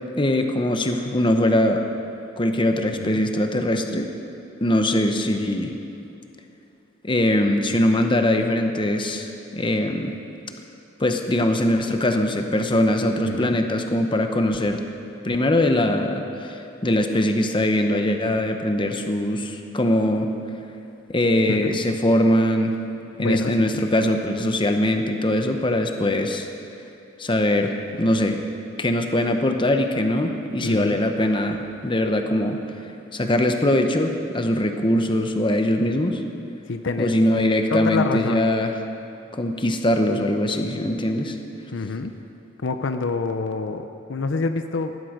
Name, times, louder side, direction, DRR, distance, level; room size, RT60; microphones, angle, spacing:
voice 1, 0.2-1.8 2.4-4.1 4.6-5.7 7.0-10.1 11.0-14.8 15.2-20.3 21.1-22.7 23.2-26.5 27.2-28.4 28.8-32.6 33.1-36.2 37.0-38.7 39.3-41.4, left 1 dB, 25° left, 5 dB, 0.9 m, -22 dB
voice 2, 13.2-13.6 21.5-21.7 23.2-23.8 30.6-31.0 36.7-37.1 37.7-38.5 41.7-42.1 42.6-45.0, left 3 dB, 65° left, 8 dB, 0.6 m, -27 dB
18.0 x 12.0 x 5.2 m, 2.8 s
head